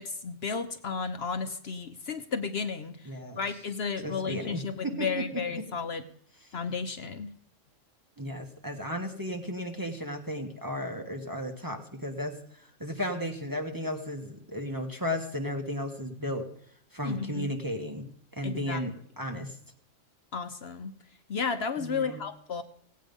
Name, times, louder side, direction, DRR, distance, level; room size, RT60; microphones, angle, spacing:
voice 1, 0.0-6.0 6.5-7.3 17.0-17.5 18.4-18.8 20.3-20.9 21.3-22.6, left 5 dB, 55° left, 9 dB, 1.0 m, -33 dB
voice 2, 3.0-3.4 4.0-4.9 8.2-16.5 16.9-19.5 21.8-22.2, equal, 15° right, 3 dB, 1.1 m, -34 dB
17.5 x 8.5 x 5.3 m, 0.65 s
omnidirectional pair, 1.3 m